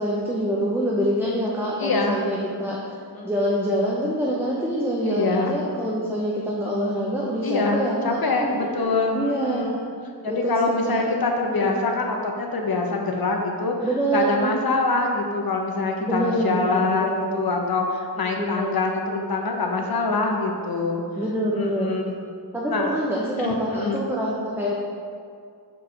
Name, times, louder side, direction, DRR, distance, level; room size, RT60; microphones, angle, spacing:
voice 1, 0.0-2.8 3.2-9.9 10.3-11.2 11.5-11.7 13.8-14.6 16.0-17.5 18.4-18.8 21.2-21.9 22.5-24.7, equal, 5° right, -4 dB, 0.6 m, -26 dB
voice 2, 1.8-2.7 3.2-3.3 5.0-5.6 7.4-9.8 10.2-21.0 21.5-22.0 22.7-22.9 23.4-24.0, left 3 dB, 55° left, 2 dB, 0.9 m, -25 dB
4.8 x 4.7 x 5.7 m, 2.2 s
wide cardioid pair, 120°, 42 cm